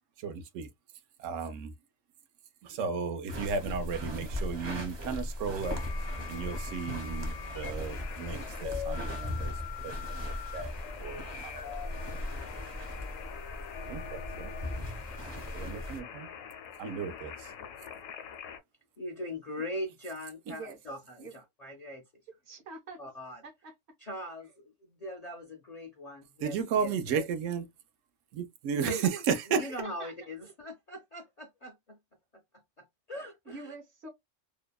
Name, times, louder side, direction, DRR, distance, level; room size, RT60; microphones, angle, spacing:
voice 1, 0.2-0.7 1.2-1.7 2.6-5.8 6.3-9.5 9.8-10.7 11.0-11.9 13.9-14.5 15.5-16.3 16.8-17.5 26.4-27.6 28.3-29.7, right 6 dB, 85° right, 0.9 m, -34 dB
sound 1, 3.3-16.0, left 1 dB, 30° right, 0.5 m, -38 dB
sound 2, 5.6-18.6, left 8 dB, 85° left, 0.9 m, -43 dB
voice 2, 19.0-22.0 23.0-23.4 24.0-27.3 28.8-29.1 29.5-32.0 33.1-33.7, left 1 dB, 55° left, 0.4 m, -41 dB
voice 3, 20.5-20.8 21.2-21.3 22.5-23.0 23.4-23.7 29.8-30.1 33.5-34.1, right 3 dB, 65° right, 1.1 m, -45 dB
2.7 x 2.1 x 2.2 m
omnidirectional pair, 1.3 m